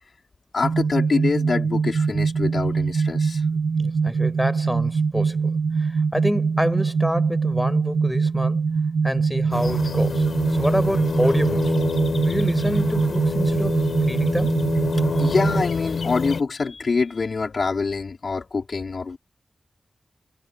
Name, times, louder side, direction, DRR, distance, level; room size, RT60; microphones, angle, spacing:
voice 1, 0.5-3.4 15.2-19.2, left 4 dB, 60° left, 3.3 m, -25 dB
sound 1, 0.6-15.6, right 5 dB, 85° right, 1.2 m, -23 dB
voice 2, 3.8-8.6 9.0-10.3 10.6-11.7 12.2-14.6, equal, ahead, 6.7 m, -27 dB
sound 2, 9.5-16.4, left 5 dB, 75° left, 3.8 m, -27 dB
wide cardioid pair, 130°, 0 cm